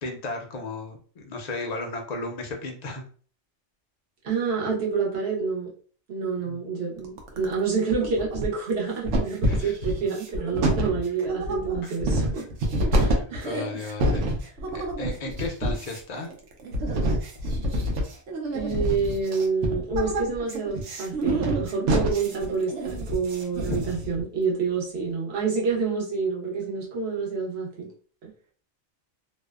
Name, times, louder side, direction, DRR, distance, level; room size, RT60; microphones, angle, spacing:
voice 1, 0.0-3.0 6.4-6.6 9.5-9.7 11.8-11.9 13.0-14.3 14.7-16.3 23.7-23.8, left 3 dB, 60° left, 3 dB, 0.4 m, -34 dB
voice 2, 4.2-5.7 6.1-12.4 12.9-13.7 18.5-27.9 28.2-28.3, right 5 dB, 65° right, -2 dB, 1.0 m, -28 dB
sound 1, 7.0-7.6 7.9-8.7 9.1-24.2, right 1 dB, 85° right, 0.9 m, -27 dB
2.5 x 2.1 x 2.3 m, 0.43 s
omnidirectional pair, 1.2 m